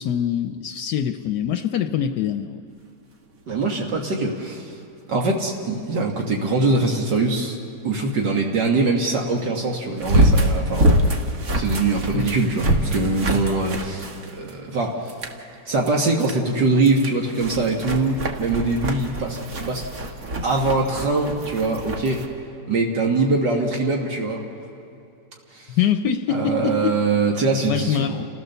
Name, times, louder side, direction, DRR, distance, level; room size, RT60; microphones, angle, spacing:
voice 1, 0.0-2.6 12.1-12.3 25.8-27.0 27.7-28.3, left 8 dB, 75° left, 8 dB, 1.2 m, -24 dB
sound 1, 3.5-3.6 10.0-14.7 15.1-15.4 15.9-16.4 16.8-22.3, right 1 dB, 55° right, 1.9 m, -24 dB
voice 2, 3.5-4.8 5.1-7.6 7.8-11.2 11.5-15.1 15.7-19.9 20.4-22.3 22.7-24.5 25.5-25.8 26.3-28.2, right 3 dB, 75° right, 0 dB, 2.2 m, -23 dB
29.0 x 16.0 x 6.8 m, 2.7 s
omnidirectional pair, 1.9 m